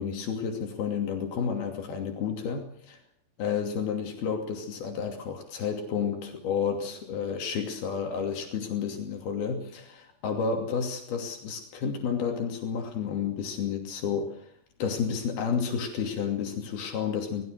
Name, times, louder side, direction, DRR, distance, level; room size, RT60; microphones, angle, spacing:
voice 1, 0.0-3.0 3.4-14.5 14.8-17.4, left 6 dB, 80° left, 3 dB, 4.7 m, -31 dB
28.0 x 20.0 x 6.5 m, 0.64 s
omnidirectional pair, 4.3 m